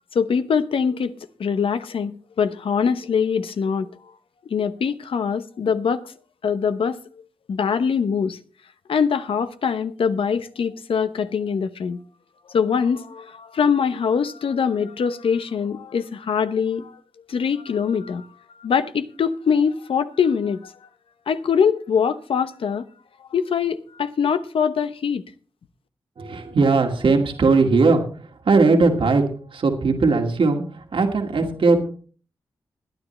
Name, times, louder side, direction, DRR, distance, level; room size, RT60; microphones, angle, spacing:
voice 1, 0.1-1.1 1.4-3.9 4.5-6.1 6.4-7.0 7.5-8.4 8.9-12.0 12.5-17.0 17.3-18.3 18.6-20.7 21.3-22.8 23.3-25.2, left 6 dB, 80° left, 0.9 m, -23 dB
voice 2, 26.2-29.2 29.5-32.0, right 3 dB, 70° right, 2.3 m, -19 dB
21.0 x 9.9 x 3.3 m
cardioid pair, 50°, 9 cm